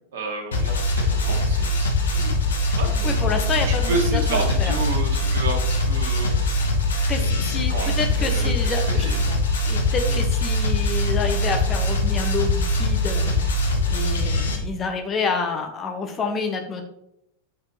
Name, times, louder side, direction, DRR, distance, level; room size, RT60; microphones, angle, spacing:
voice 1, 0.1-2.4 2.7-9.3 10.1-10.2, right 2 dB, 60° right, 1 dB, 1.6 m, -31 dB
sound 1, 0.5-14.6, left 1 dB, 65° left, 1.0 m, -22 dB
voice 2, 3.0-4.7 7.1-9.4 9.7-16.8, left 4 dB, 25° left, 4 dB, 0.9 m, -28 dB
6.9 x 4.7 x 3.1 m, 0.77 s
figure-of-eight pair, 90°, 0 cm